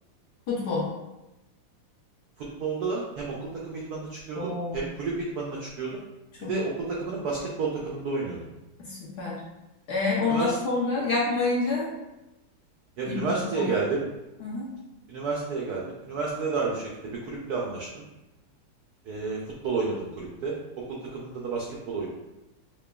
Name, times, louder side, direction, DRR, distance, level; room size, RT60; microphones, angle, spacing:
voice 1, 0.5-0.9 4.4-4.8 6.4-6.5 8.8-9.4 9.9-11.9 13.1-13.7 14.4-14.7, left 3 dB, 65° left, -5 dB, 1.1 m, -28 dB
voice 2, 2.4-6.0 6.5-8.4 10.3-10.6 13.0-14.0 15.1-18.0 19.0-20.5 20.9-22.1, right 4 dB, 85° right, -3 dB, 0.8 m, -31 dB
5.8 x 2.2 x 2.2 m, 0.97 s
omnidirectional pair, 2.3 m